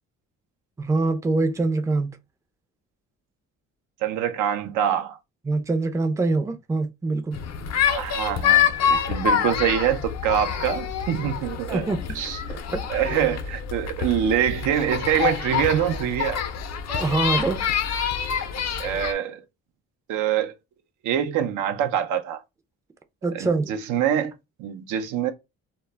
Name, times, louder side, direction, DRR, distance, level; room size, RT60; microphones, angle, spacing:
voice 1, 0.8-2.2 5.5-7.4 11.7-12.0 12.7-12.8 16.9-17.6 23.2-23.7, right 3 dB, 10° right, 0.4 m, -24 dB
voice 2, 4.0-5.2 7.9-11.9 12.1-12.4 12.9-16.4 18.8-19.4 20.1-20.5 21.0-22.4 23.3-24.3 24.6-25.3, right 9 dB, 85° right, 0.5 m, -25 dB
sound 1, 7.3-19.1, left 8 dB, 60° left, 0.5 m, -26 dB
2.2 x 2.0 x 3.2 m
cardioid pair, 90°, 30 cm